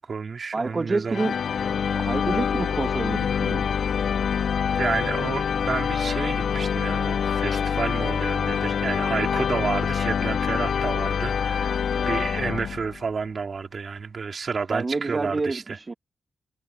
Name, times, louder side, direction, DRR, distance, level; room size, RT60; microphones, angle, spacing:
voice 1, 0.0-1.3 4.7-15.8, right 5 dB, 55° right, 3.2 m, -30 dB
voice 2, 0.5-1.4 1.9-3.8 11.8-11.9 14.7-15.9, right 3 dB, 40° right, 1.6 m, -28 dB
sound 1, 1.1-13.1, left 7 dB, 75° left, 0.3 m, -25 dB
cardioid pair, 50°, 0 cm